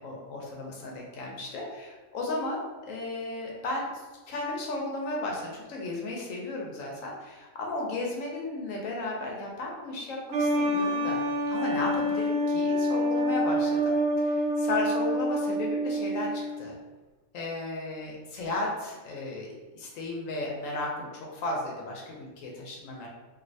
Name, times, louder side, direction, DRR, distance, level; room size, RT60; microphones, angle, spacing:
voice 1, 0.0-2.6 2.9-11.2 11.5-16.8 17.3-19.5 19.7-23.1, left 2 dB, 75° left, -1 dB, 1.0 m, -34 dB
sound 1, 10.3-16.6, equal, 70° right, 0.9 m, -27 dB
3.1 x 2.5 x 2.6 m, 1.2 s
omnidirectional pair, 1.4 m